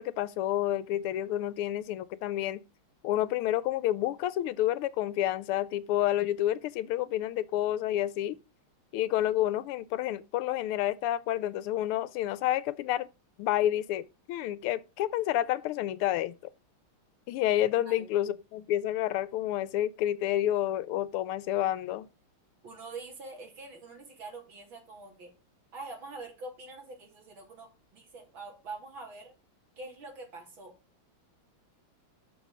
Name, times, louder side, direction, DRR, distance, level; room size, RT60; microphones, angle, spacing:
voice 1, 0.0-2.6 3.0-8.4 8.9-13.1 13.4-16.3 17.3-22.1, left 13 dB, 85° left, 1.5 m, -29 dB
voice 2, 17.8-18.2 22.6-25.3 25.7-29.3 29.8-30.7, right 3 dB, 60° right, 3.9 m, -45 dB
6.7 x 6.2 x 6.1 m
omnidirectional pair, 2.4 m